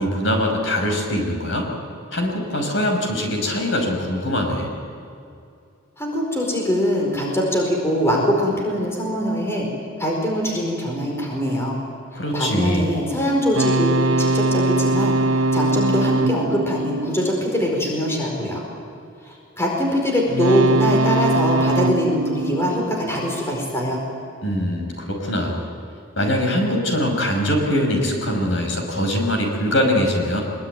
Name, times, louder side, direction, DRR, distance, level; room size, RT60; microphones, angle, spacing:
voice 1, 0.0-1.7 2.1-4.7 12.1-12.8 24.4-25.7 26.2-30.4, left 1 dB, 70° left, 2 dB, 5.9 m, -22 dB
voice 2, 6.0-9.7 10.0-11.8 12.1-15.2 15.5-18.6 19.2-24.0, equal, 15° left, -1 dB, 4.7 m, -22 dB
sound 1, 13.5-17.9 20.3-23.6, right 2 dB, 70° right, 0.9 m, -22 dB
24.5 x 22.0 x 9.3 m, 2.5 s
head